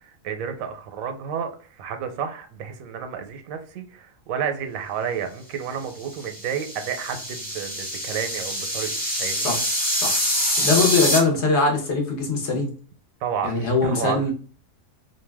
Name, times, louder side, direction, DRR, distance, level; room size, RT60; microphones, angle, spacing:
voice 1, 0.2-1.5 1.8-8.9 9.2-9.6 13.2-14.3, right 7 dB, 80° right, 7 dB, 1.0 m, -31 dB
sound 1, 6.0-11.2, equal, 10° left, 0.4 m, -25 dB
voice 2, 10.6-12.7 13.4-14.3, left 3 dB, 60° left, 1 dB, 1.0 m, -21 dB
2.6 x 2.1 x 3.3 m, 0.40 s
omnidirectional pair, 1.4 m